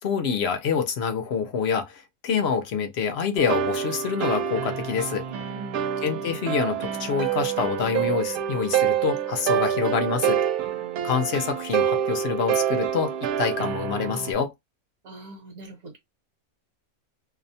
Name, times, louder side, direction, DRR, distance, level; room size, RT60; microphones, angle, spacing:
voice 1, 0.0-5.3 6.0-10.4 11.0-13.1 13.4-14.5, left 6 dB, 60° left, 0.7 m, -26 dB
sound 1, 3.4-14.3, right 9 dB, 90° right, 1.1 m, -27 dB
voice 2, 5.3-5.9 10.7-11.2 15.0-16.0, right 2 dB, 65° right, 1.2 m, -43 dB
2.7 x 2.1 x 2.6 m
omnidirectional pair, 1.5 m